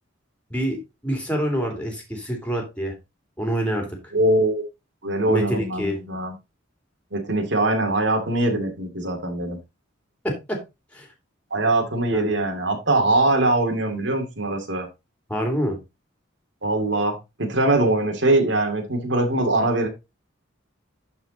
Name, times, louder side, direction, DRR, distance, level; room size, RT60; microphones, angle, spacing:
voice 1, 0.5-2.9 3.4-3.9 5.3-6.0 10.5-10.6 10.9-11.1 12.1-12.3 15.3-15.8, equal, 5° left, 2 dB, 2.7 m, -26 dB
voice 2, 4.1-4.6 5.0-6.3 7.1-9.6 11.5-14.9 16.6-19.9, right 2 dB, 60° right, 3 dB, 2.4 m, -22 dB
11.0 x 4.7 x 3.9 m, 0.24 s
head